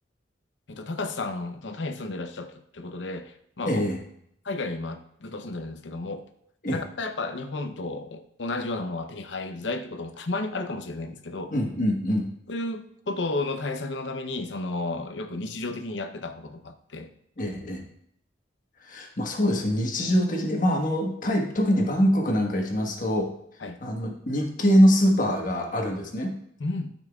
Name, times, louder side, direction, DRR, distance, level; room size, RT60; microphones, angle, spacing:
voice 1, 0.7-3.8 4.4-6.3 6.7-11.5 12.5-17.1 23.6-23.8 26.6-26.9, left 2 dB, 70° left, 0.7 m, -33 dB
voice 2, 3.6-4.0 6.6-6.8 11.5-12.3 17.4-17.8 18.8-23.3 23.8-26.3, equal, 45° left, 1.4 m, -23 dB
12.5 x 5.8 x 2.4 m
head